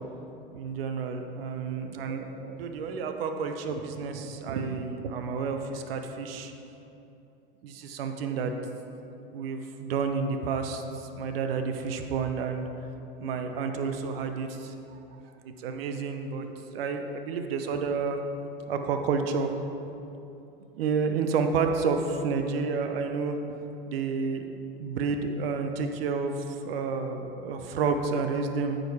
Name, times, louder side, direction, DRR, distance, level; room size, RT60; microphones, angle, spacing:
voice 1, 0.5-6.5 7.6-8.5 9.3-12.7 13.2-15.0 15.6-16.5 16.7-18.2 18.7-19.5 20.8-23.4 23.9-24.4 24.8-28.8, right 5 dB, 75° right, 6 dB, 0.8 m, -30 dB
9.1 x 5.1 x 4.7 m, 2.9 s
hypercardioid pair, 85°, 30 cm